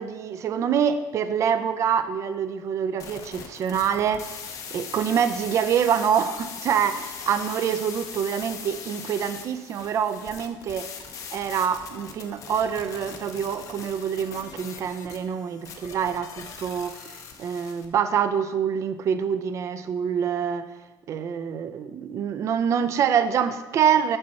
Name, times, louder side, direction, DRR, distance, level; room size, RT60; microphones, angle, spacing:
voice 1, 0.0-4.3 4.7-10.9 11.3-20.7 21.1-24.2, right 8 dB, 40° right, 11 dB, 0.3 m, -26 dB
sound 1, 3.0-17.9, left 6 dB, 40° left, 0.6 m, -40 dB
5.7 x 5.4 x 4.1 m, 1.2 s
cardioid pair, 165°, 8 cm